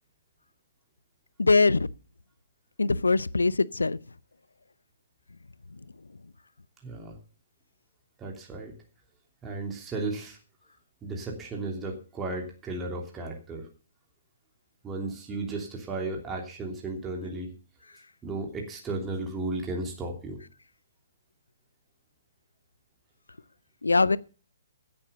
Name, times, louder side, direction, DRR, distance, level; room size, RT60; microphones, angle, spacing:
voice 1, 1.4-1.8 2.8-4.0 23.8-24.2, left 3 dB, 75° left, 0.6 m, -22 dB
voice 2, 6.8-7.2 8.2-8.7 9.4-10.4 11.0-13.7 14.8-17.5 18.2-20.4, right 2 dB, 15° right, 3.1 m, -34 dB
15.5 x 7.8 x 6.8 m
figure-of-eight pair, 130°, 0 cm